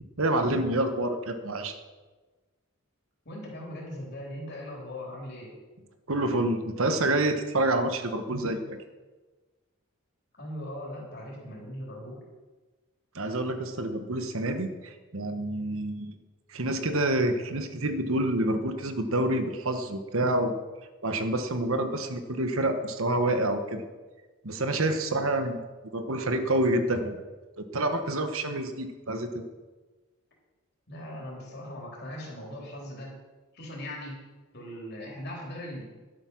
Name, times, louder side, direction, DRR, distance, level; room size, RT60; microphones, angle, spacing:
voice 1, 0.0-1.8 6.1-8.8 13.1-16.1 16.5-20.6 21.0-23.8 24.4-25.6 25.9-27.2 27.6-29.4, right 1 dB, 65° right, 8 dB, 1.2 m, -28 dB
voice 2, 3.3-5.5 10.4-12.2 30.9-33.1 33.5-34.2 34.5-35.8, left 1 dB, 45° left, -2 dB, 3.8 m, -39 dB
12.0 x 9.0 x 6.3 m, 1.2 s
head